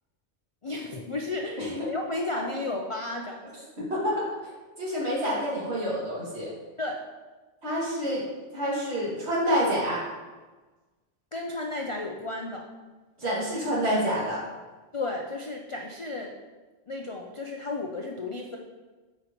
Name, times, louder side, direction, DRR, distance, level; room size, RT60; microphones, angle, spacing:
voice 1, 0.6-3.4 6.8-7.0 11.3-12.7 14.9-16.3 16.9-18.6, left 2 dB, 45° left, 1 dB, 0.4 m, -33 dB
voice 2, 3.8-4.3 4.8-6.5 7.6-8.2 8.5-10.0 13.2-14.4, equal, 65° right, -6 dB, 2.3 m, -28 dB
8.2 x 5.1 x 2.9 m, 1.3 s
omnidirectional pair, 1.2 m